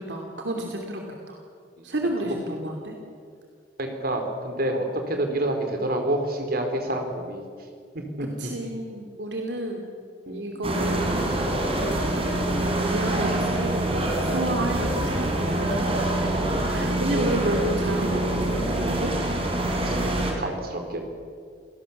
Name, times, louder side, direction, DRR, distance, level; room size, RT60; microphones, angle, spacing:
voice 1, 0.0-1.4 1.8-3.0 8.2-9.9 10.3-11.1 11.8-12.5 12.8-15.9 16.5-19.2, right 1 dB, 75° right, 1 dB, 2.8 m, -31 dB
voice 2, 3.8-7.4 7.9-8.3 10.3-10.5 19.8-21.0, right 1 dB, 55° right, 4 dB, 3.9 m, -28 dB
sound 1, 10.6-20.3, right 1 dB, 35° right, 4.3 m, -25 dB
28.0 x 18.0 x 7.2 m, 2.2 s
head